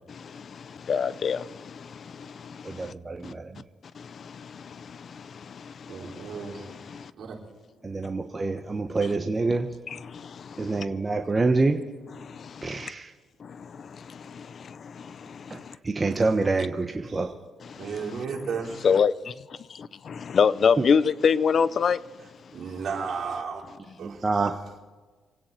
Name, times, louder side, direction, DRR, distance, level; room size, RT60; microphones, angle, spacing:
voice 1, 0.1-2.9 3.2-3.3 3.9-7.1 9.0-9.2 9.9-10.9 12.1-12.9 13.4-15.8 16.0-16.2 17.6-17.9 18.8-22.0, left 6 dB, 50° left, 0.5 m, -28 dB
voice 2, 2.7-3.4 7.8-9.7 10.6-11.8 12.6-13.0 15.8-16.9 17.1-17.3 24.2-24.5, right 3 dB, 25° right, 1.2 m, -26 dB
voice 3, 5.9-6.7 7.2-7.3 17.1-17.3 17.8-19.0 22.5-23.6 24.0-24.5, right 5 dB, 60° right, 4.7 m, -34 dB
27.0 x 9.6 x 4.5 m
cardioid pair, 90°, 0 cm